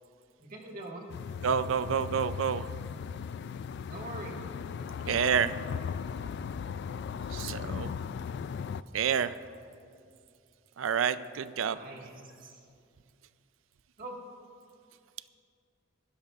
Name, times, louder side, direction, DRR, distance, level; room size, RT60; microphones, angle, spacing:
voice 1, 0.4-1.1 3.9-4.4 11.6-12.7 14.0-14.2, right 2 dB, 45° right, -1 dB, 1.8 m, -43 dB
sound 1, 1.1-8.8, left 6 dB, 60° left, 0.3 m, -37 dB
voice 2, 1.4-2.7 5.1-5.5 7.3-7.9 8.9-9.3 10.8-11.8, right 7 dB, 85° right, 14 dB, 0.4 m, -28 dB
24.5 x 13.0 x 2.4 m, 2.4 s
head